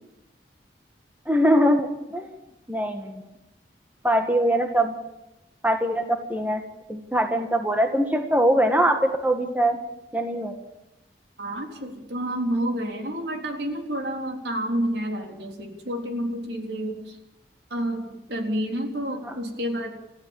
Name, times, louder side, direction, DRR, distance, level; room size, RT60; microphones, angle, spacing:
voice 1, 1.3-2.3 2.7-3.2 4.0-4.9 5.6-6.6 6.9-9.8 10.1-10.6 19.2-19.3, equal, 10° right, 4 dB, 1.7 m, -22 dB
voice 2, 11.4-17.2 17.7-19.9, equal, 70° right, 3 dB, 3.6 m, -29 dB
29.0 x 14.5 x 7.3 m, 0.92 s
head